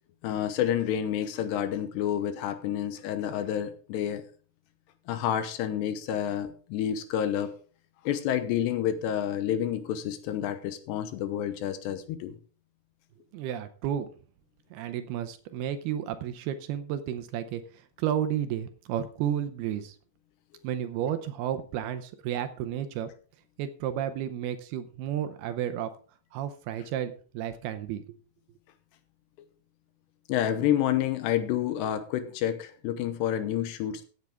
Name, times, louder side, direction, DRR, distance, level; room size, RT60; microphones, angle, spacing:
voice 1, 0.2-4.2 5.1-7.5 8.0-12.4 30.3-34.1, left 10 dB, 80° left, 10 dB, 3.0 m, -29 dB
voice 2, 13.3-14.1 14.7-17.6 18.0-20.0 20.6-23.1 23.6-25.9 26.3-28.0, right 10 dB, 75° right, 10 dB, 2.5 m, -32 dB
16.0 x 8.2 x 3.5 m, 0.40 s
omnidirectional pair, 5.1 m